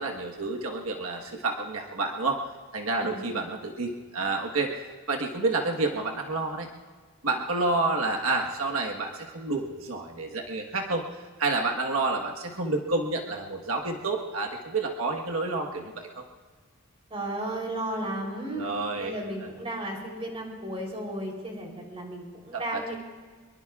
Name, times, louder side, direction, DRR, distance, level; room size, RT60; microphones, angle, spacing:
voice 1, 0.0-2.4 2.7-6.7 7.2-11.0 11.4-16.2 18.6-19.1 22.5-23.0, right 3 dB, 85° right, 2 dB, 1.4 m, -29 dB
voice 2, 3.0-3.3 17.1-18.7 19.0-23.0, right 1 dB, 30° right, 0 dB, 3.5 m, -34 dB
24.5 x 22.5 x 2.4 m, 1.5 s
head